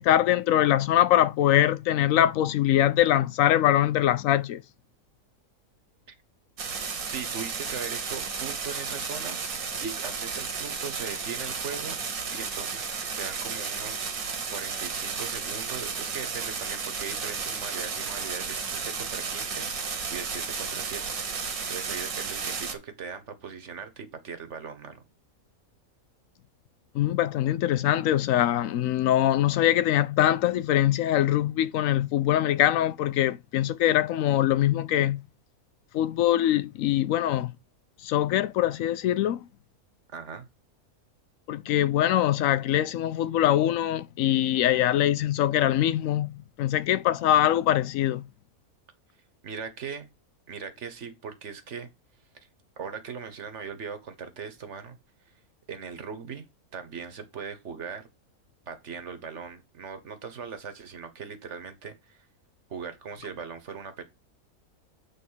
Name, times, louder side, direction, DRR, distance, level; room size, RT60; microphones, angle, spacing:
voice 1, 0.0-4.6 26.9-35.2 35.9-37.5 38.0-39.4 41.5-48.2, left 12 dB, 70° left, 0.9 m, -23 dB
sound 1, 6.6-22.7, right 5 dB, 75° right, 1.7 m, -33 dB
voice 2, 7.1-9.4 9.8-12.0 12.3-12.9 13.2-14.1 14.5-25.0 40.1-40.5 49.4-50.1 50.5-51.9 52.8-55.0 55.3-55.4 55.7-58.1 58.7-62.3 62.7-64.0, right 6 dB, 55° right, 1.3 m, -39 dB
8.4 x 3.7 x 5.5 m
omnidirectional pair, 1.5 m